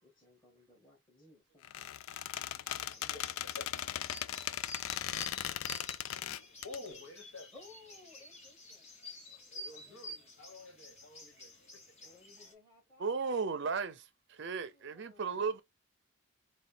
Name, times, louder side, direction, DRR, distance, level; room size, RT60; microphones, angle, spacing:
voice 1, 0.0-2.0 2.8-3.2 7.5-9.2 9.5-10.3 12.0-13.6 14.6-15.6, left 2 dB, 15° left, 2.5 m, -61 dB
Squeak, 1.6-6.8, left 11 dB, 90° left, 0.4 m, -38 dB
sound 1, 2.1-12.5, left 1 dB, 35° left, 1.4 m, -51 dB
voice 2, 2.7-3.7 6.6-7.5 9.5-11.8, left 3 dB, 65° left, 1.5 m, -51 dB
voice 3, 13.0-15.6, right 5 dB, 55° right, 0.5 m, -35 dB
4.2 x 2.3 x 3.8 m
head